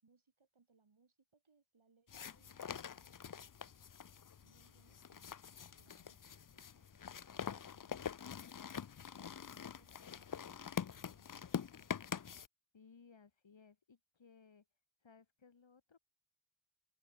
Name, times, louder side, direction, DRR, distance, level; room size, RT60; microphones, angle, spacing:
voice 1, 0.0-3.8 4.4-5.3 5.8-8.2 9.1-9.5 9.8-12.1, right 4 dB, 85° right, 7.7 m, -74 dB
sound 1, 2.1-12.5, left 7 dB, 45° left, 0.6 m, -45 dB
voice 2, 12.7-14.7 15.0-16.0, left 5 dB, 70° left, 2.1 m, -63 dB
wide cardioid pair, 80°, 47 cm